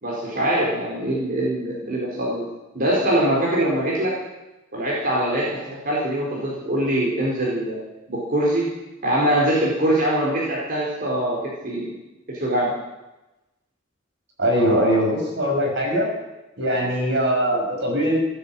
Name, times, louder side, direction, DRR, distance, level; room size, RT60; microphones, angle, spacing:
voice 1, 0.0-2.5 2.7-4.1 4.7-7.8 8.1-8.7 9.0-11.4 11.6-11.9 12.3-12.7 14.6-14.9, right 1 dB, 50° right, -5 dB, 4.5 m, -23 dB
voice 2, 14.4-16.1 16.6-18.2, equal, 65° right, 0 dB, 5.8 m, -21 dB
15.5 x 11.0 x 7.7 m, 1.0 s
head